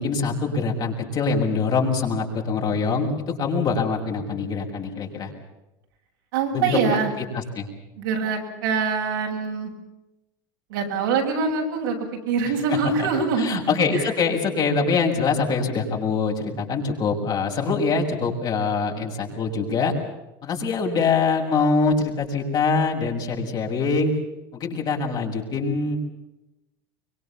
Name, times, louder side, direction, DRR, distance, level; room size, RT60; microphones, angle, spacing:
voice 1, 0.0-3.1 3.4-5.3 6.5-6.7 7.2-7.7 12.4-19.9 20.4-24.1 24.5-26.0, left 4 dB, 40° left, 0 dB, 6.7 m, -24 dB
voice 2, 6.3-7.1 8.0-9.7 10.7-12.0 12.3-13.6 13.9-14.1, right 5 dB, 85° right, 1 dB, 7.3 m, -24 dB
24.5 x 23.5 x 7.3 m, 0.96 s
supercardioid pair, 110°, 11 cm